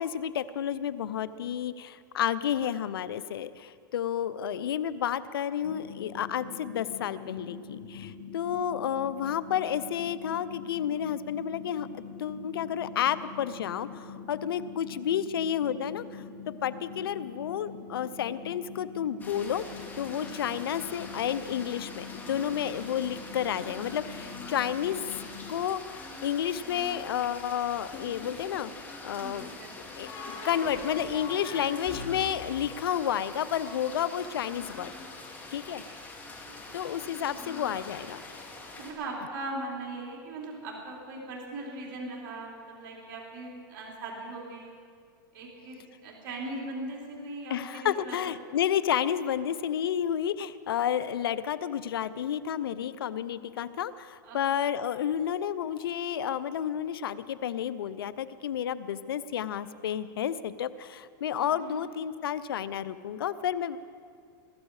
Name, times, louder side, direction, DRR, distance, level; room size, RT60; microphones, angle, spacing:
voice 1, 0.0-16.2 16.6-19.6 20.0-25.0 25.5-28.7 29.0-34.9 35.5-35.8 36.7-38.2 47.5-63.8, left 9 dB, 85° left, 16 dB, 0.7 m, -31 dB
sound 1, 5.6-25.5, left 5 dB, 60° left, 3.2 m, -44 dB
sound 2, 19.2-38.9, left 2 dB, 15° left, 2.9 m, -44 dB
voice 2, 20.2-20.6 29.2-30.6 30.9-31.5 36.5-36.9 38.8-44.7 45.3-48.2 54.2-54.4 61.4-61.8, right 2 dB, 55° right, -2 dB, 3.7 m, -40 dB
sound 3, 27.9-28.8 30.0-33.7, left 4 dB, 40° left, 3.9 m, -42 dB
22.0 x 13.0 x 4.9 m, 2.2 s
hypercardioid pair, 120°, 12 cm